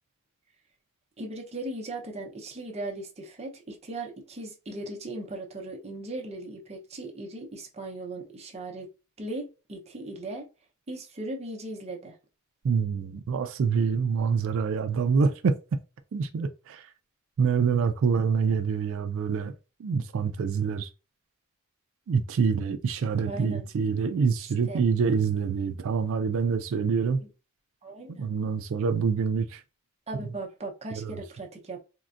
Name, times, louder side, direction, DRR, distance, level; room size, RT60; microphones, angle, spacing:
voice 1, 1.2-8.9 9.2-10.5 10.9-12.1 23.2-23.7 24.4-24.8 27.2-27.3 27.8-28.3 30.1-31.8, right 2 dB, 30° right, 0.7 m, -38 dB
voice 2, 12.6-15.6 16.1-16.9 17.4-19.5 19.8-20.9 22.1-27.2 28.2-29.6 31.0-31.1, right 5 dB, 60° right, 0.3 m, -26 dB
3.7 x 2.1 x 2.4 m
head